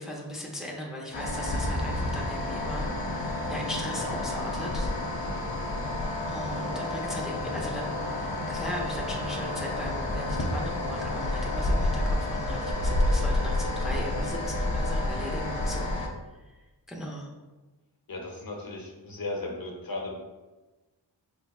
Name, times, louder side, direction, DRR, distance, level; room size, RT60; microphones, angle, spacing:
voice 1, 0.0-2.9 3.5-4.9 6.3-15.9 16.3-17.3, equal, ahead, -3 dB, 0.7 m, -38 dB
sound 1, 1.1-16.1, left 1 dB, 80° left, 0.7 m, -29 dB
voice 2, 18.1-20.1, left 2 dB, 50° left, -1 dB, 0.9 m, -36 dB
4.4 x 3.1 x 2.4 m, 1.2 s
wide cardioid pair, 50°, 44 cm